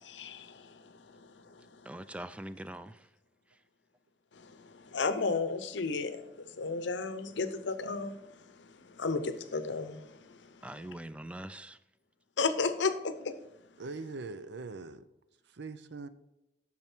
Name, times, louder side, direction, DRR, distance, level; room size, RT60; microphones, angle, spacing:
voice 1, 0.0-1.2 4.3-8.2 8.6-10.4 10.8-10.9 12.4-13.3, left 4 dB, 70° left, 0.7 m, -34 dB
voice 2, 1.9-3.0 10.6-11.8, right 1 dB, 5° right, 0.3 m, -42 dB
voice 3, 13.8-15.1 15.5-16.1, right 3 dB, 65° right, 0.5 m, -42 dB
8.9 x 6.4 x 4.5 m
head